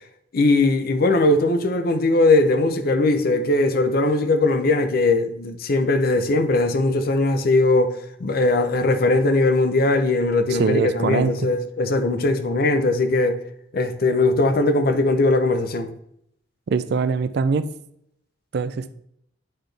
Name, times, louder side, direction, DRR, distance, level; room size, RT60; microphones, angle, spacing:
voice 1, 0.3-13.4 13.7-15.9, left 2 dB, 55° left, 0.6 m, -20 dB
voice 2, 10.5-11.3 16.7-17.7 18.5-18.9, right 5 dB, 60° right, 0.4 m, -22 dB
8.7 x 4.1 x 3.3 m
head